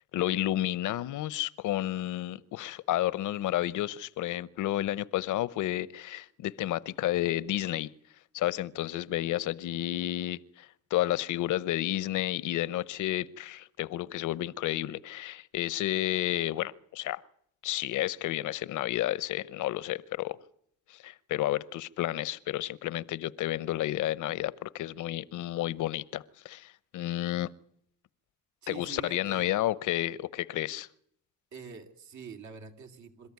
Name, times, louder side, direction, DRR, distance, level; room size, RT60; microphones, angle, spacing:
voice 1, 0.1-7.9 8.3-17.2 17.6-20.4 20.9-27.5 28.7-30.9, left 14 dB, 80° left, 0.9 m, -31 dB
voice 2, 28.6-29.5 31.5-33.3, right 5 dB, 70° right, 2.7 m, -45 dB
27.0 x 13.5 x 9.5 m
cardioid pair, 90°, 30 cm